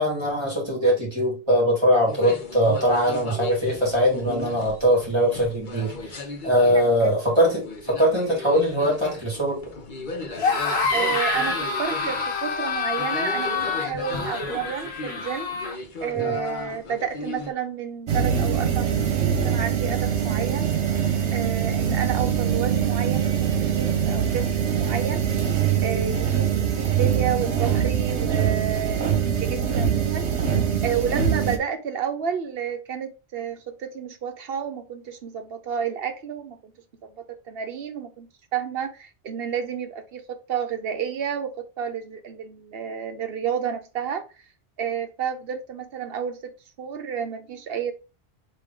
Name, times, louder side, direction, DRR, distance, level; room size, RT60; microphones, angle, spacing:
voice 1, 0.0-9.6 16.1-16.3, equal, 25° right, 2.0 m, -22 dB
sound 1, 2.1-17.5, left 2 dB, 50° left, 1.0 m, -36 dB
sound 2, 10.3-15.8, left 4 dB, 70° left, 1.4 m, -27 dB
voice 2, 10.9-15.7 16.0-20.7 21.3-25.2 25.8-29.0 29.4-30.3 30.8-36.7 37.0-44.2 44.8-46.5 46.8-47.9, right 7 dB, 65° right, 1.0 m, -30 dB
sound 3, 18.1-31.6, right 8 dB, 85° right, 1.1 m, -23 dB
3.7 x 2.8 x 4.6 m
omnidirectional pair, 1.1 m